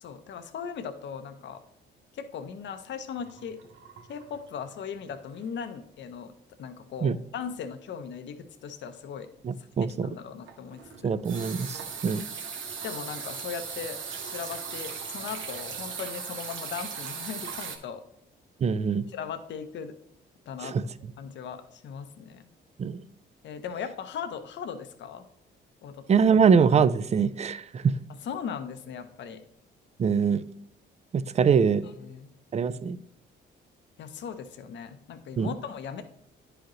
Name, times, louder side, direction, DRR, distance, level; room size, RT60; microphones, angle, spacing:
voice 1, 0.0-1.6 2.1-3.6 4.1-6.3 6.6-9.3 10.0-11.1 12.8-18.0 19.1-19.9 20.5-20.8 21.2-22.5 23.4-25.2 25.8-26.0 28.2-29.4 31.4-31.5 32.0-32.3 34.0-36.0, left 7 dB, 65° left, 8 dB, 0.8 m, -38 dB
sound 1, 3.2-4.8 5.1-5.4 5.7-5.8 10.4-17.8, right 6 dB, 80° right, 1.3 m, -38 dB
voice 2, 9.4-10.1 11.0-12.2 18.6-19.1 20.6-20.9 22.8-23.0 26.1-28.0 30.0-30.4 31.1-31.9 32.5-33.0 35.4-35.5, right 6 dB, 35° right, 15 dB, 0.4 m, -23 dB
10.0 x 4.9 x 3.1 m, 0.80 s
cardioid pair, 90°, 20 cm